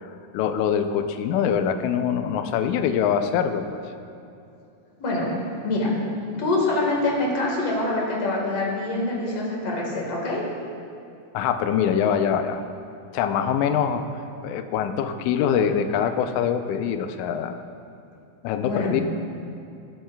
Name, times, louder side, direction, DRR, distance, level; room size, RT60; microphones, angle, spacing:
voice 1, 0.3-3.8 11.3-12.6 13.1-14.0 14.4-17.6 18.4-19.0, left 8 dB, 80° left, 8 dB, 1.8 m, -24 dB
voice 2, 5.0-5.4 5.6-5.9 6.4-10.5 18.7-19.0, left 2 dB, 55° left, -3 dB, 2.4 m, -25 dB
19.5 x 7.6 x 2.3 m, 2.7 s
omnidirectional pair, 3.8 m